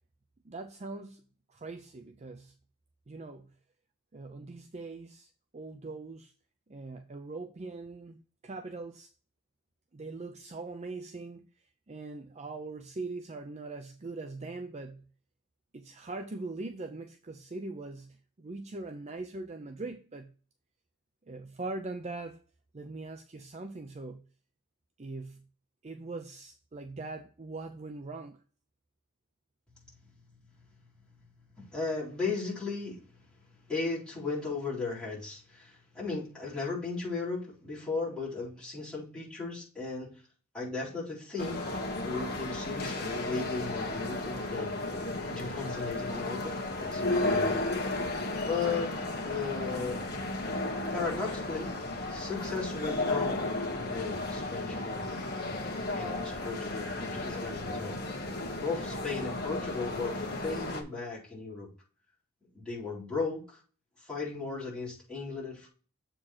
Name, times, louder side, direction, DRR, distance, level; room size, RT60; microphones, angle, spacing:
voice 1, 0.4-2.5 3.1-3.5 4.1-6.3 6.7-9.1 9.9-11.4 11.9-15.0 15.7-20.3 21.3-22.4 22.7-24.2 25.0-25.4 25.8-28.4, right 3 dB, 30° right, 0.5 m, -41 dB
voice 2, 29.8-30.3 30.6-30.7 31.1-31.2 31.6-40.1 40.5-41.7 42.0-44.7 45.3-47.6 48.4-50.0 50.9-51.7 52.1-55.2 55.9-58.3 58.5-61.7 62.5-63.6 64.0-65.7, left 4 dB, 5° left, 4.2 m, -36 dB
sound 1, 41.4-60.8, left 2 dB, 45° left, 1.5 m, -34 dB
7.4 x 4.5 x 4.2 m
head